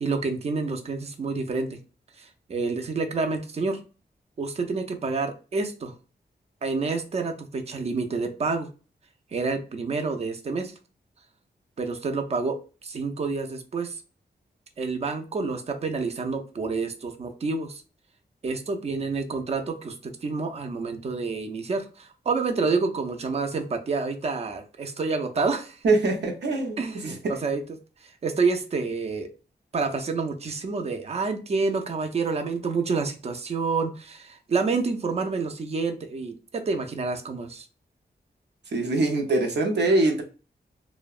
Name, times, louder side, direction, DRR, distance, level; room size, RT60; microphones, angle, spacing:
voice 1, 0.0-1.8 2.2-3.8 4.4-5.9 6.6-8.7 9.3-10.7 11.8-12.6 12.8-14.0 14.8-17.8 18.4-25.8 26.8-27.6 28.0-29.3 29.7-37.7, right 4 dB, 35° right, 0.4 m, -28 dB
voice 2, 25.8-27.4 38.7-40.2, right 2 dB, 80° right, 0.6 m, -23 dB
2.6 x 2.1 x 2.3 m
wide cardioid pair, 155°, 18 cm